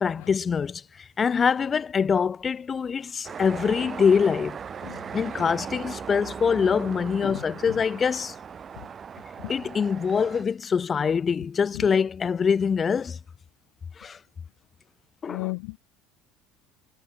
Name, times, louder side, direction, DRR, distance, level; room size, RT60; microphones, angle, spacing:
voice 1, 0.0-4.6 5.1-8.3 9.5-13.2 14.0-14.2 15.2-15.5, left 6 dB, 30° left, 0.5 m, -24 dB
sound 1, 3.2-10.4, right 7 dB, 35° right, 4.5 m, -38 dB
voice 2, 7.2-7.8 9.4-9.5 11.7-11.8 15.3-15.8, left 32 dB, 80° left, 0.6 m, -35 dB
supercardioid pair, 100°, 0 cm